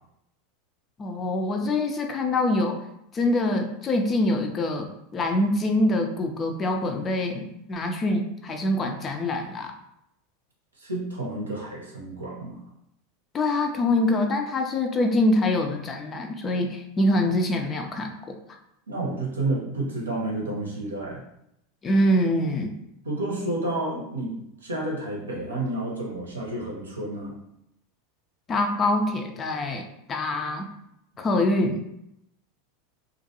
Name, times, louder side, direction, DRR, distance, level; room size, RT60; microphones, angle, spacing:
voice 1, 1.0-2.8 3.1-9.7 13.3-18.4 21.8-22.7 28.5-30.7 31.2-31.8, left 1 dB, 25° left, 4 dB, 0.4 m, -24 dB
voice 2, 10.8-12.6 18.9-21.2 23.0-24.3 24.6-27.3, right 2 dB, 75° right, -2 dB, 0.7 m, -30 dB
2.5 x 2.1 x 2.7 m, 0.80 s
figure-of-eight pair, 85°, 0 cm